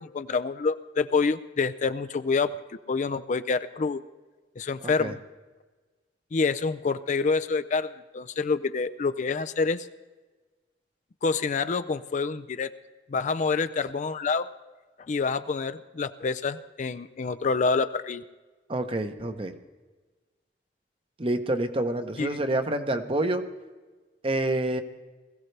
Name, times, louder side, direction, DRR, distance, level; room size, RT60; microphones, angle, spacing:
voice 1, 0.0-2.6 2.9-4.0 4.6-5.2 6.3-9.9 11.2-12.7 13.1-14.5 15.1-18.2 22.2-22.4, left 4 dB, 45° left, 12 dB, 0.4 m, -27 dB
voice 2, 4.8-5.1 18.7-19.5 21.2-23.4 24.2-24.8, right 1 dB, 30° right, 8 dB, 0.9 m, -27 dB
20.5 x 15.5 x 3.3 m, 1.3 s
head